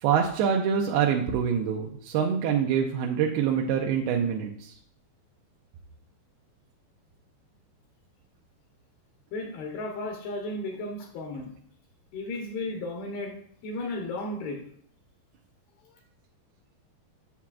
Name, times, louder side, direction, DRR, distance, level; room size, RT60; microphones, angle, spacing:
voice 1, 0.0-4.7, right 7 dB, 80° right, 1 dB, 2.4 m, -25 dB
voice 2, 9.3-11.5 12.1-13.4 13.6-14.6, left 2 dB, 75° left, 0 dB, 2.8 m, -34 dB
8.3 x 7.2 x 2.4 m, 0.64 s
omnidirectional pair, 4.8 m